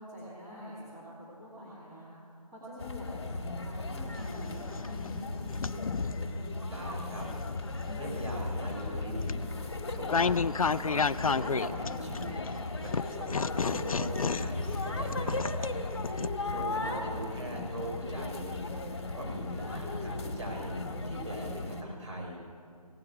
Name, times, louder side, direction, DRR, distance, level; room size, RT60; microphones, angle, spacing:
voice 1, 0.0-4.9, equal, 10° right, -12 dB, 2.6 m, -46 dB
sound 1, 2.8-21.8, left 2 dB, 45° left, 1.5 m, -36 dB
sound 2, 4.2-6.3 6.9-12.5 12.9-16.3, left 5 dB, 65° left, 0.5 m, -32 dB
voice 2, 6.7-7.3 8.0-9.3 9.6-12.4 12.8-15.7 16.4-18.6 19.1-20.7 21.0-22.4, right 1 dB, 50° right, -2 dB, 5.4 m, -41 dB
17.5 x 9.6 x 8.0 m, 2.3 s
figure-of-eight pair, 165°, 20 cm